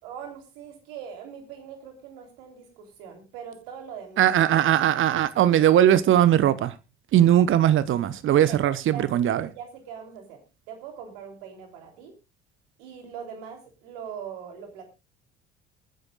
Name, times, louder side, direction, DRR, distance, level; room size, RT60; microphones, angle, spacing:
voice 1, 0.0-4.6 8.3-9.1 9.4-12.1 12.8-14.8, right 7 dB, 65° right, 3.4 m, -41 dB
voice 2, 4.2-6.7 7.1-9.5, right 11 dB, 45° right, 1.1 m, -20 dB
26.0 x 9.9 x 2.4 m
figure-of-eight pair, 60°, 30 cm